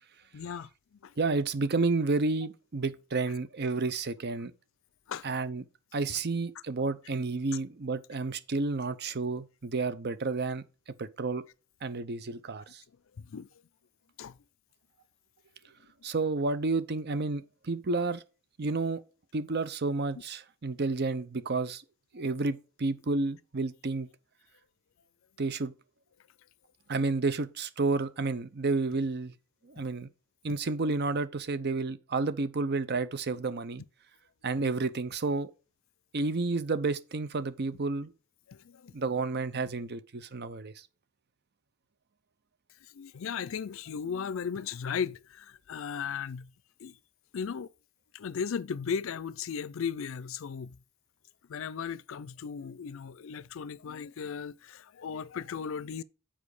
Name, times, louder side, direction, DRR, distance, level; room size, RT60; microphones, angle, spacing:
voice 1, 0.3-0.7 1.0-1.1 5.1-5.2 13.2-13.5 14.2-14.3 38.5-38.9 42.9-46.5 46.8-46.9 47.3-47.7 48.1-50.8 51.5-56.0, left 6 dB, 65° left, 0.4 m, -36 dB
voice 2, 1.2-4.5 5.2-5.6 5.9-10.6 11.0-11.4 11.8-12.6 16.0-18.2 18.6-19.0 19.3-21.8 22.1-24.1 25.4-25.7 26.9-29.3 29.7-30.1 30.4-33.8 34.4-35.5 36.1-38.1 38.9-40.7, right 3 dB, 50° right, 0.7 m, -30 dB
7.4 x 5.1 x 4.8 m
head